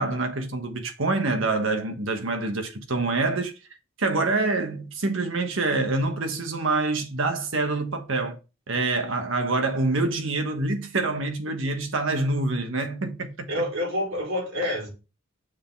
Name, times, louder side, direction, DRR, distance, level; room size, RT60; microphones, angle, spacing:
voice 1, 0.0-3.5 4.0-8.4 8.7-13.7, right 3 dB, 70° right, 1.3 m, -26 dB
voice 2, 13.5-14.9, left 1 dB, 85° right, 4.1 m, -27 dB
6.5 x 3.8 x 4.6 m
head